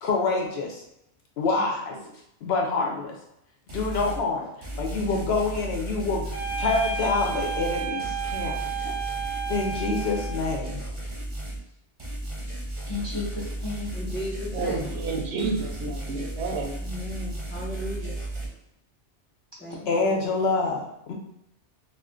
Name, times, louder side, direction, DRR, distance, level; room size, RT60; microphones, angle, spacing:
voice 1, 0.0-0.8 1.4-2.0 2.4-3.2 3.7-8.6 9.5-10.8 19.9-21.1, left 3 dB, 65° left, 0.8 m, -27 dB
sound 1, 3.7-4.2 4.6-11.6 12.0-18.5, right 1 dB, 30° right, 0.7 m, -34 dB
sound 2, 6.3-10.5, right 5 dB, 90° left, 1.1 m, -32 dB
voice 2, 12.9-13.9 19.8-20.2, left 3 dB, 35° left, 0.5 m, -35 dB
voice 3, 13.9-15.2 16.8-18.1 19.6-20.3, left 1 dB, 10° left, 0.9 m, -37 dB
voice 4, 14.5-16.8, right 3 dB, 75° right, 0.8 m, -30 dB
2.5 x 2.4 x 3.6 m
omnidirectional pair, 1.2 m